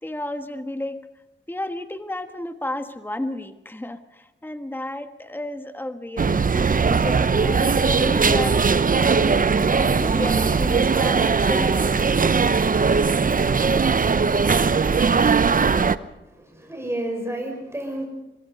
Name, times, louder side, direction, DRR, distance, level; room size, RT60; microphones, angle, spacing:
voice 1, 0.0-1.1 1.5-8.6 8.9-12.2, left 1 dB, 10° left, 8 dB, 1.4 m, -32 dB
sound 1, 6.2-16.0, right 5 dB, 45° right, 0.8 m, -19 dB
voice 2, 16.2-18.1, right 1 dB, 15° right, 2 dB, 5.8 m, -30 dB
26.0 x 22.0 x 5.4 m, 1.0 s
cardioid pair, 55°, 20 cm